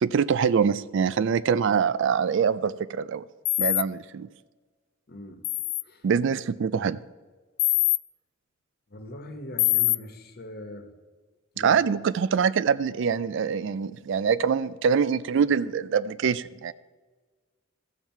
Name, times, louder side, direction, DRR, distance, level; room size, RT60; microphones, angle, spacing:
voice 1, 0.0-3.2 3.6-4.3 6.0-7.0 11.6-16.7, right 6 dB, 65° right, 17 dB, 0.4 m, -24 dB
sound 1, 3.5-3.8 5.4-5.8 7.6-8.0 9.6-10.0, left 19 dB, 85° left, 0.3 m, -23 dB
voice 2, 5.1-5.4 5.8-6.1 8.9-10.9 11.5-12.0, left 1 dB, 50° left, 6 dB, 1.2 m, -41 dB
14.0 x 7.4 x 4.5 m, 1.3 s
head